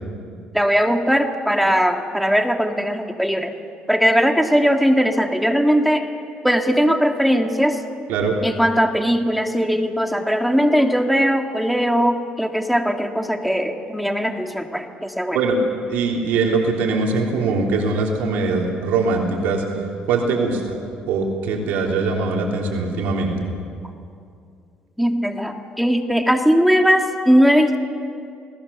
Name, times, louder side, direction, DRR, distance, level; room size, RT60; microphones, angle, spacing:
voice 1, 0.5-3.5 3.9-6.1 6.4-7.8 8.4-15.4 25.0-27.8, equal, ahead, 4 dB, 2.0 m, -19 dB
voice 2, 15.9-19.6 20.1-20.8 21.1-23.5, right 4 dB, 90° right, 0 dB, 3.4 m, -21 dB
29.0 x 19.5 x 7.1 m, 2.4 s
cardioid pair, 115°, 3 cm